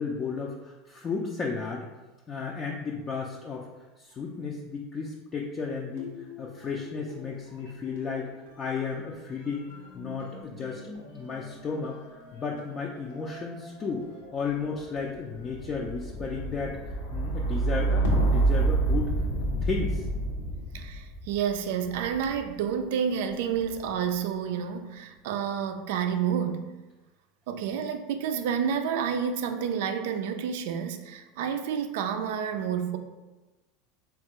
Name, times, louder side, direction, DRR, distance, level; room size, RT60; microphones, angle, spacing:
voice 1, 0.0-1.9 2.3-3.7 4.0-8.3 8.6-9.7 9.9-12.0 12.3-14.1 14.3-19.1 19.6-20.1, left 5 dB, 35° left, -2 dB, 0.4 m, -34 dB
sound 1, 5.9-7.3 7.5-22.6 23.3-23.9, right 2 dB, 80° left, 0.7 m, -31 dB
voice 2, 20.7-26.7 27.5-33.0, right 7 dB, 70° right, 7 dB, 0.3 m, -29 dB
3.5 x 2.4 x 2.9 m, 1.1 s
hypercardioid pair, 90°, 0 cm